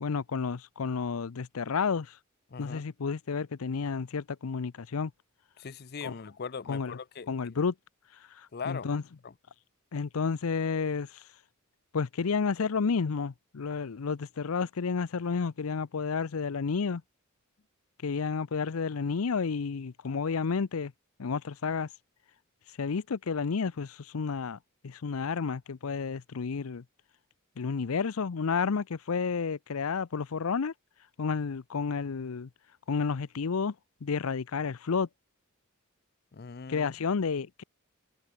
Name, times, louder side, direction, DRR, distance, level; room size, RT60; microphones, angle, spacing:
voice 1, 0.0-2.2 2.6-5.1 6.0-6.1 6.7-7.0 7.3-7.7 8.3-9.0 9.9-11.3 11.9-17.0 18.0-20.9 21.2-21.9 22.8-24.6 24.8-26.8 27.6-30.7 31.2-32.5 32.9-33.7 34.0-35.1 36.7-37.6, left 5 dB, 90° left, 0.6 m, -31 dB
voice 2, 2.5-2.8 5.6-7.3 8.5-8.9 9.2-9.3 36.3-36.9, left 5 dB, 50° left, 0.6 m, -40 dB
head